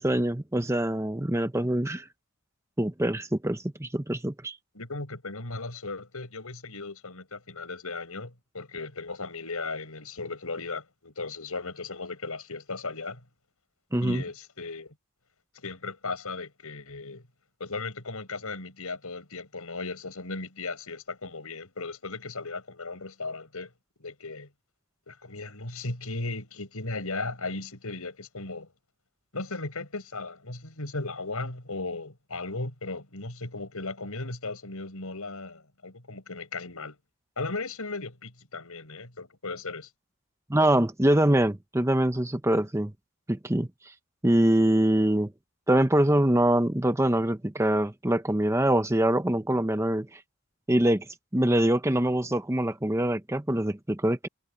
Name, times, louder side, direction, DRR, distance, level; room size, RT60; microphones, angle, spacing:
voice 1, 0.0-2.0 2.8-4.6 13.9-14.2 40.5-42.9 43.3-43.7 44.2-45.3 45.7-50.2 50.7-51.1 51.3-54.3, right 1 dB, 10° right, 0.8 m, -24 dB
voice 2, 4.7-13.2 14.0-14.9 15.6-17.2 17.6-23.7 24.0-24.5 25.1-28.7 29.3-37.0 37.4-39.9, left 3 dB, 75° left, 5.0 m, -36 dB
head